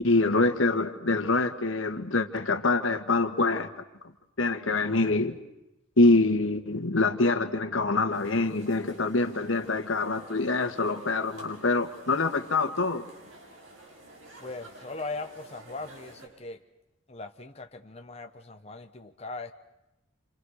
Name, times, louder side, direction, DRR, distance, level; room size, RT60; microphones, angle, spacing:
voice 1, 0.0-3.7 4.4-5.4 6.0-13.0, left 3 dB, 75° left, 1.7 m, -25 dB
sound 1, 8.1-16.3, right 2 dB, 70° right, 7.1 m, -51 dB
voice 2, 14.4-16.6 17.1-19.5, left 3 dB, 30° left, 1.1 m, -39 dB
30.0 x 26.5 x 6.5 m
head